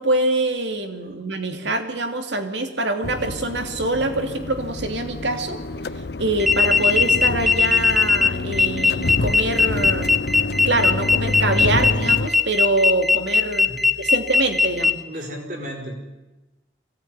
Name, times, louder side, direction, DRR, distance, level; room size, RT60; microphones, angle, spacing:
voice 1, 0.0-5.6 6.2-10.1 10.6-13.7 14.0-15.0, right 2 dB, 75° right, 6 dB, 2.7 m, -24 dB
sound 1, 3.0-12.3, left 2 dB, 60° left, 0.8 m, -28 dB
sound 2, 6.4-14.9, left 4 dB, ahead, 0.8 m, -18 dB
voice 2, 15.1-16.2, equal, 45° right, 2 dB, 5.4 m, -34 dB
24.0 x 18.0 x 9.8 m, 1.1 s
head